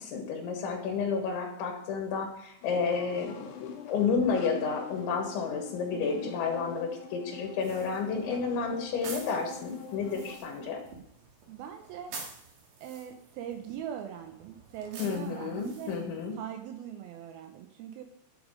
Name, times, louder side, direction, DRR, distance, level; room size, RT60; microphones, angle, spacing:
voice 1, 0.0-10.8 15.0-16.4, left 5 dB, 85° left, 2 dB, 3.8 m, -31 dB
sound 1, 2.6-10.4, left 6 dB, 70° left, 3.1 m, -45 dB
voice 2, 5.9-6.3 11.5-12.1 12.8-16.0 16.3-18.0, right 9 dB, 80° right, 5 dB, 2.2 m, -41 dB
sound 2, 7.6-16.3, right 4 dB, 55° right, 3.4 m, -48 dB
10.5 x 8.2 x 5.1 m, 0.75 s
omnidirectional pair, 5.3 m